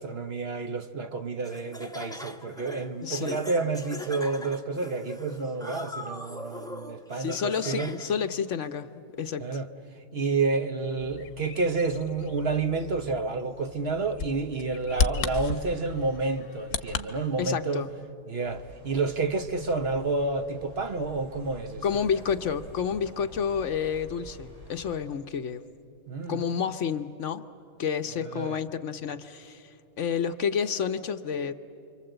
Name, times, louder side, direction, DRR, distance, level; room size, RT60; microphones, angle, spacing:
voice 1, 0.0-7.9 9.4-9.7 10.1-17.8 18.3-22.0 26.1-26.4 28.3-28.6, right 3 dB, 50° right, 1.1 m, -29 dB
Laughter, 1.4-8.3, left 1 dB, 5° left, 0.7 m, -41 dB
voice 2, 3.0-3.4 7.2-9.6 17.4-17.9 21.8-25.6 26.3-27.4 27.8-31.5, left 7 dB, 60° left, 1.0 m, -30 dB
Bird vocalization bird call bird song, 11.0-17.1, left 5 dB, 85° left, 1.5 m, -34 dB
sound 1, 18.4-24.9, equal, 80° right, 4.6 m, -48 dB
29.5 x 24.5 x 7.9 m
omnidirectional pair, 1.5 m